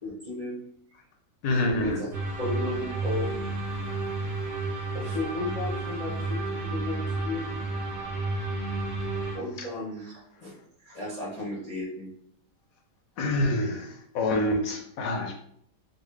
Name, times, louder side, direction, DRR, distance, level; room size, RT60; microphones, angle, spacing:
voice 1, 0.0-0.6 1.5-2.1 2.4-3.3 4.9-7.5 9.3-10.1 10.4-10.5 10.8-12.1, left 2 dB, 40° left, -6 dB, 0.6 m, -34 dB
voice 2, 1.4-2.1 9.6-9.7 13.2-15.3, left 1 dB, 65° left, 3 dB, 1.0 m, -27 dB
sound 1, 2.1-9.4, right 2 dB, 40° right, 0.9 m, -31 dB
4.0 x 2.1 x 3.1 m, 0.65 s
omnidirectional pair, 1.9 m